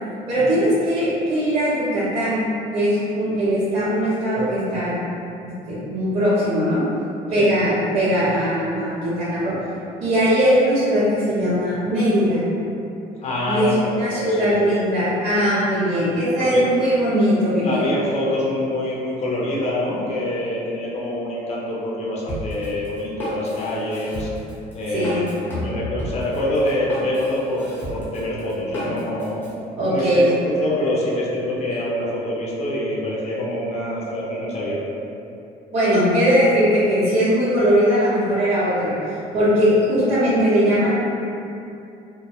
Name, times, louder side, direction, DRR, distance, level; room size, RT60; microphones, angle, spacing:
voice 1, 0.3-2.4 2.7-4.9 5.4-6.8 7.3-9.5 10.0-12.4 13.5-13.7 14.0-18.0 24.9-25.2 29.8-30.2 35.7-38.9 39.3-40.9, equal, 60° right, -16 dB, 1.0 m, -20 dB
voice 2, 13.2-14.6 16.4-16.6 17.6-24.3 24.7-29.4 29.9-30.2 30.6-34.8, left 1 dB, 40° left, -6 dB, 0.6 m, -25 dB
Drum kit, 22.3-29.5, equal, 10° left, 0.9 m, -32 dB
2.2 x 2.1 x 2.9 m, 2.7 s
cardioid pair, 110°, 17 cm